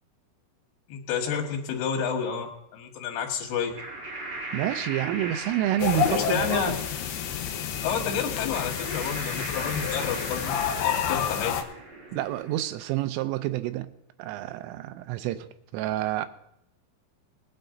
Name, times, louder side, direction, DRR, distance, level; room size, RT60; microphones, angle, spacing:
voice 1, 0.9-3.7 6.2-6.8 7.8-10.5 10.8-11.6, left 7 dB, 60° left, 3.5 m, -30 dB
sound 1, 3.7-12.6, right 2 dB, 60° right, 1.0 m, -39 dB
voice 2, 4.5-6.8 12.1-13.9 14.2-16.3, right 13 dB, 85° right, 3.2 m, -29 dB
sound 2, 5.8-11.6, left 9 dB, 85° left, 2.2 m, -29 dB
21.0 x 8.9 x 3.9 m
omnidirectional pair, 5.7 m